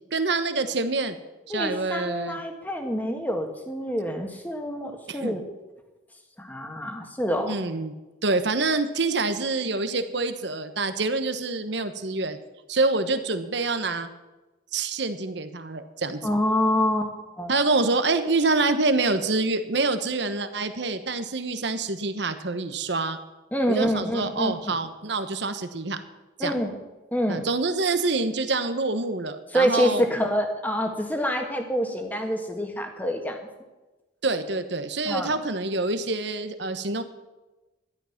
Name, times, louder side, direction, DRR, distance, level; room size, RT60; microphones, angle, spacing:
voice 1, 0.1-1.2 1.5-2.4 5.1-5.4 7.5-7.9 8.2-12.4 12.7-14.1 14.7-16.2 17.5-23.2 23.7-26.0 26.4-26.5 27.3-30.0 34.2-37.0, right 3 dB, 65° right, 9 dB, 1.2 m, -26 dB
voice 2, 1.5-5.4 6.4-7.6 16.2-17.1 17.4-17.5 23.5-24.5 26.4-26.8 27.1-27.5 29.5-33.4 35.1-35.3, equal, 10° left, 3 dB, 1.7 m, -26 dB
13.5 x 11.5 x 5.9 m, 1.1 s
head